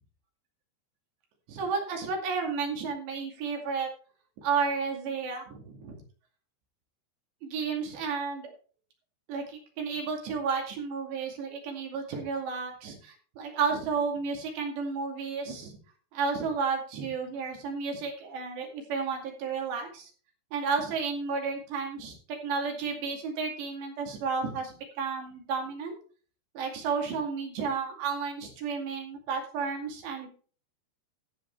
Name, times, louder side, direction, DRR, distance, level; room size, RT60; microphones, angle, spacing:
voice 1, 1.5-3.9 4.4-6.0 7.4-8.5 9.3-15.7 16.1-20.1 20.5-22.2 22.4-26.0 26.5-30.3, right 5 dB, 70° right, 1 dB, 4.5 m, -32 dB
14.0 x 8.7 x 3.4 m, 0.40 s
omnidirectional pair, 5.2 m